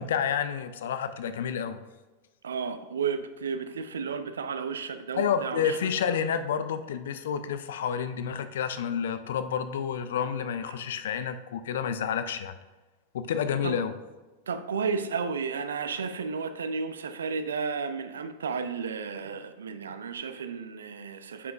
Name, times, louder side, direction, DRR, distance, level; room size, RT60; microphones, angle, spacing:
voice 1, 0.0-1.8 5.1-12.5 13.1-13.9, left 7 dB, 60° left, 11 dB, 0.5 m, -29 dB
voice 2, 2.4-5.8 10.7-10.8 13.6-13.8 14.5-21.5, right 5 dB, 65° right, 10 dB, 0.5 m, -33 dB
9.4 x 5.8 x 2.5 m, 1.2 s
figure-of-eight pair, 90°, 0 cm